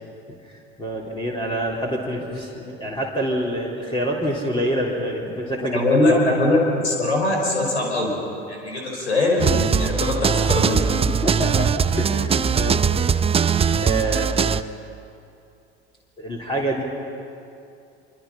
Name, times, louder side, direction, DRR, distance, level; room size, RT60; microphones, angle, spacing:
voice 1, 0.8-6.4 11.1-13.2 13.8-14.6 16.2-16.8, right 1 dB, 15° left, -3 dB, 3.7 m, -27 dB
voice 2, 5.7-8.2 8.5-10.8, left 2 dB, 85° left, 0 dB, 5.4 m, -21 dB
sound 1, 9.4-14.6, right 6 dB, 20° right, 0.6 m, -21 dB
27.0 x 24.5 x 5.6 m, 2.6 s
figure-of-eight pair, 70°, 33 cm